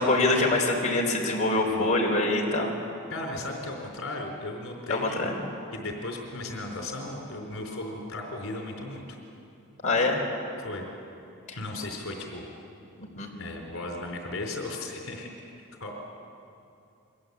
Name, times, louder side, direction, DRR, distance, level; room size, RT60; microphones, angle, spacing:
voice 1, 0.0-2.7 4.9-5.3 9.8-10.2 11.5-11.6 13.2-13.3, left 2 dB, 35° left, -1 dB, 4.2 m, -24 dB
voice 2, 1.6-1.9 3.1-5.3 5.7-9.0 10.6-10.8 11.6-12.5 13.4-15.3 15.8-15.9, left 2 dB, 65° left, 2 dB, 4.3 m, -36 dB
29.0 x 23.0 x 8.4 m, 2.6 s
head